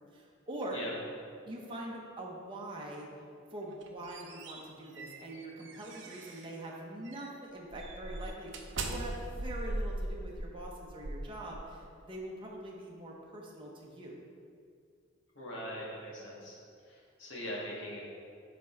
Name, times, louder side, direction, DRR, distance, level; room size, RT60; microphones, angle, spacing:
voice 1, 0.1-0.9 1.4-3.1 3.5-14.2, right 1 dB, 25° right, -3 dB, 0.9 m, -43 dB
sound 1, 3.6-6.6 7.1-7.3 7.7-12.0, right 1 dB, 65° right, 0.6 m, -40 dB
voice 2, 15.4-16.6 16.9-18.0, equal, 70° left, -5 dB, 1.7 m, -41 dB
6.1 x 5.1 x 4.5 m, 2.3 s
head